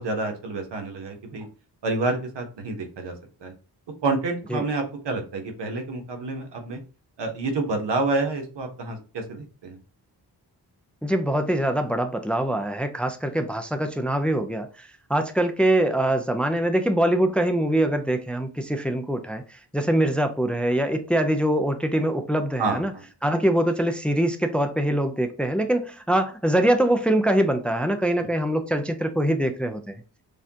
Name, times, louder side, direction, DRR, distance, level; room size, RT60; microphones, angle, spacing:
voice 1, 0.0-1.5 1.8-3.1 3.4-3.5 4.0-6.8 7.2-9.8 22.6-23.0, right 3 dB, 75° right, 4 dB, 1.2 m, -28 dB
voice 2, 11.0-22.9 23.2-29.9, right 1 dB, 5° left, 6 dB, 0.5 m, -23 dB
6.5 x 2.3 x 2.9 m, 0.35 s
cardioid pair, 70°, 42 cm